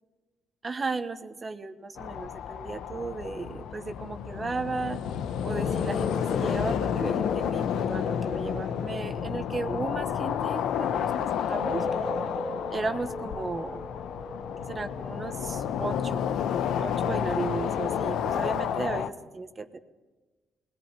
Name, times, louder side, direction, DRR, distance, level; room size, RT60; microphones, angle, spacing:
voice 1, 0.6-5.0 5.4-11.8 12.7-13.8 14.7-16.2 16.8-19.8, right 3 dB, 30° right, 9 dB, 1.3 m, -35 dB
sound 1, 2.0-19.1, left 8 dB, 85° left, 1.0 m, -30 dB
sound 2, 5.5-18.0, left 1 dB, 10° right, 2.1 m, -40 dB
20.0 x 18.0 x 8.9 m, 1.2 s
cardioid pair, 90°, 0 cm